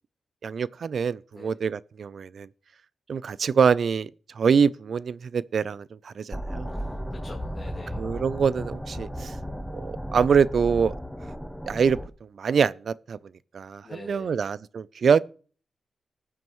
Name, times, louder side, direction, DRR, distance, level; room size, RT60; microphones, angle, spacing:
voice 1, 0.4-2.5 3.1-4.1 4.4-6.7 8.0-9.3 9.7-10.9 11.7-12.0 12.4-13.2 13.5-15.2, right 6 dB, 65° right, 0.4 m, -24 dB
sound 1, 6.3-12.1, equal, 5° left, 0.9 m, -35 dB
voice 2, 6.7-8.0 13.8-14.5, left 3 dB, 40° left, 2.4 m, -46 dB
19.5 x 7.6 x 3.1 m
cardioid pair, 80°, 0 cm